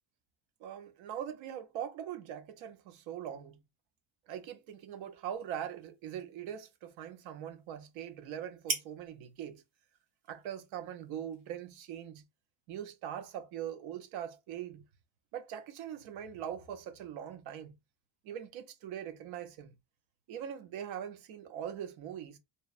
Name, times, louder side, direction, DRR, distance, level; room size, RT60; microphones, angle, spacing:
voice 1, 0.6-3.6 4.3-9.6 10.3-12.2 12.7-14.8 15.3-17.8 18.2-19.7 20.3-22.4, right 9 dB, 75° right, 0.7 m, -42 dB
sound 1, 4.4-12.1, right 4 dB, 45° right, 1.0 m, -46 dB
2.8 x 2.0 x 2.4 m
cardioid pair, 155°, 47 cm